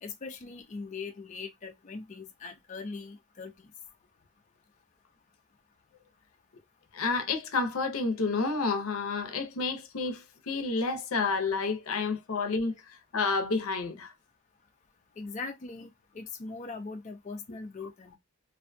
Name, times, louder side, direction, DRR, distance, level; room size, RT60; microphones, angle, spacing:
voice 1, 0.0-3.7 15.2-18.2, left 4 dB, 35° left, 0.4 m, -41 dB
voice 2, 6.9-14.1, left 4 dB, 80° left, 0.6 m, -30 dB
2.5 x 2.2 x 2.5 m
head